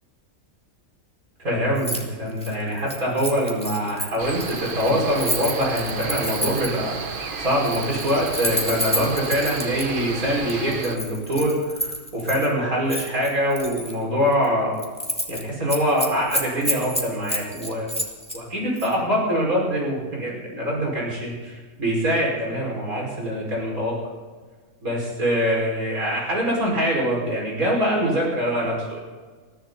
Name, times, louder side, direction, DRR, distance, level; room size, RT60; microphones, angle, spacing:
voice 1, 1.4-1.9 2.2-14.8 15.3-17.9 18.3-23.9 24.8-29.0, equal, 80° right, -3 dB, 6.1 m, -24 dB
Keys jangling, 1.8-2.0 2.3-6.8 7.5-9.8 10.5-12.5 12.9-13.9 14.3-14.5 14.8-15.4 15.7-18.4 18.8-18.9, equal, 5° left, 2.3 m, -29 dB
Cricket, 4.2-11.0, right 4 dB, 40° right, 1.1 m, -32 dB
22.0 x 14.5 x 4.2 m, 1.4 s
omnidirectional pair, 1.5 m